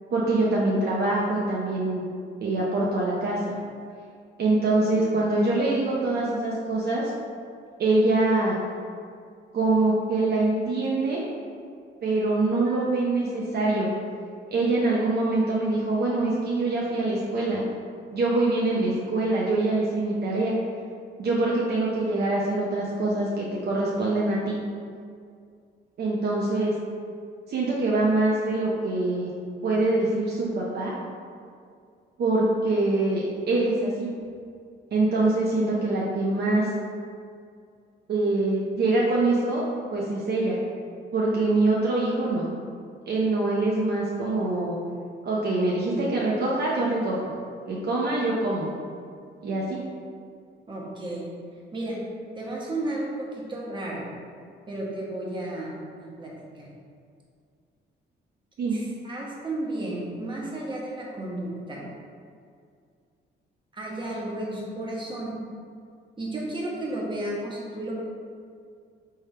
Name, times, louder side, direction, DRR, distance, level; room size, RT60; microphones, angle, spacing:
voice 1, 0.1-2.0 2.4-3.6 4.4-7.1 7.8-8.5 9.5-11.2 12.0-13.9 14.5-17.6 18.1-20.5 21.2-24.6 26.0-26.7 27.5-29.3 29.6-30.9 32.2-34.1 34.9-36.7 38.1-39.6 39.9-40.6 41.1-42.5 43.1-44.7 45.2-47.3 47.7-48.7 49.4-49.8 58.6-58.8, right 2 dB, 55° right, -5 dB, 0.7 m, -24 dB
voice 2, 50.7-51.2 51.7-52.0 52.4-54.0 54.7-55.8 56.2-56.7 58.7-61.8 63.7-65.4 66.2-67.9, right 1 dB, 25° right, -5 dB, 1.2 m, -33 dB
3.4 x 3.4 x 4.3 m, 2.2 s
cardioid pair, 90°, 20 cm